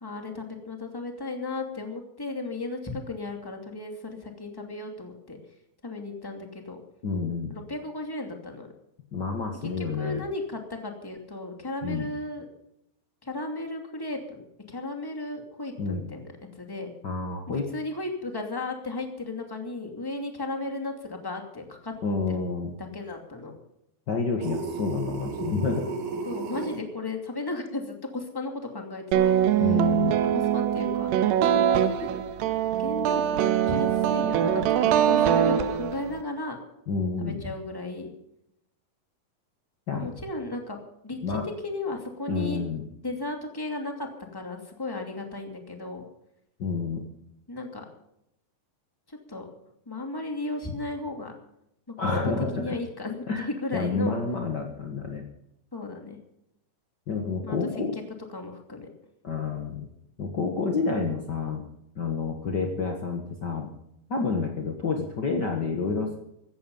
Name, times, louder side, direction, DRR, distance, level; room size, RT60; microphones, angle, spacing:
voice 1, 0.0-5.4 5.8-6.8 7.5-8.7 9.8-12.5 13.2-16.9 17.5-22.0 22.3-22.4 22.8-23.6 26.3-29.6 30.3-31.5 31.8-32.1 32.8-36.6 37.2-38.1 39.9-40.8 41.0-42.6 43.0-46.1 47.5-47.9 49.1-49.5 49.9-51.3 52.0-54.2 55.7-56.2 57.4-57.6 57.9-58.0 58.3-58.9, left 2 dB, 10° left, 3 dB, 1.7 m, -35 dB
voice 2, 7.0-7.5 9.1-10.2 11.8-12.1 15.8-16.0 17.0-17.7 22.0-22.7 24.1-25.9 29.6-30.1 36.9-37.4 39.9-40.1 41.2-41.4 42.3-42.8 46.6-47.0 52.0-52.7 53.3-53.5 53.7-55.2 57.1-57.9 59.2-59.9 60.2-61.6 61.9-63.7 64.1-66.2, left 4 dB, 65° left, 2 dB, 1.0 m, -29 dB
sound 1, 24.4-26.8, right 4 dB, 70° right, 3.7 m, -33 dB
sound 2, 29.1-36.2, right 10 dB, 90° right, 3.0 m, -23 dB
16.0 x 14.0 x 5.5 m, 0.79 s
omnidirectional pair, 4.7 m